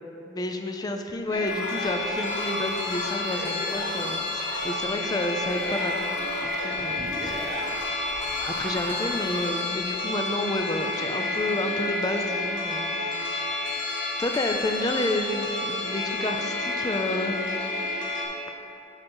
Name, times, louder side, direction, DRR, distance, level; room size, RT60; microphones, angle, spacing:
voice 1, 0.3-6.0 6.4-7.9 8.4-12.9 13.2-13.5 14.2-17.4 17.8-17.9, left 1 dB, 20° left, 4 dB, 0.5 m, -30 dB
sound 1, 1.2-9.7, right 1 dB, 80° right, 1.4 m, -38 dB
sound 2, 1.3-18.2, left 2 dB, 85° left, 1.5 m, -30 dB
11.5 x 4.0 x 5.4 m, 2.9 s
head